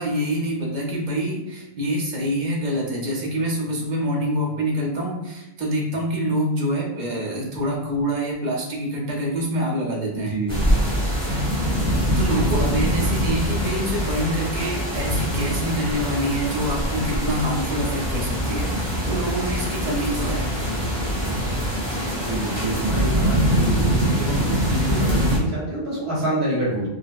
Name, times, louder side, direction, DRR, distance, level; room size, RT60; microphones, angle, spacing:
voice 1, 0.0-10.4 12.2-20.5, equal, 50° right, -1 dB, 0.8 m, -26 dB
voice 2, 10.1-10.6 12.5-12.7 16.9-17.4 22.1-26.9, right 1 dB, 75° right, -8 dB, 1.9 m, -27 dB
sound 1, 10.5-25.4, equal, 5° left, 0.8 m, -23 dB
4.0 x 2.0 x 2.4 m, 0.91 s
omnidirectional pair, 1.1 m